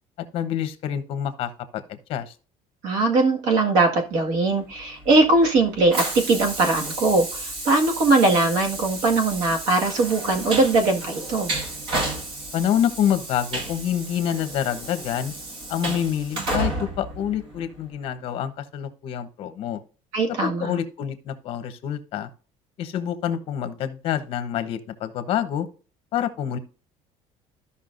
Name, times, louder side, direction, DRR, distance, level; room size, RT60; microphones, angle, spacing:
voice 1, 0.3-2.3 12.5-15.3 15.7-19.8 20.4-22.3 22.8-25.7 26.1-26.6, left 9 dB, 45° left, 10 dB, 0.9 m, -27 dB
voice 2, 2.8-11.5 20.1-20.7, right 3 dB, 70° right, 3 dB, 1.8 m, -20 dB
Train, 4.8-17.9, right 2 dB, 40° right, 1.8 m, -32 dB
14.0 x 5.6 x 2.6 m, 0.37 s
cardioid pair, 180°, 13 cm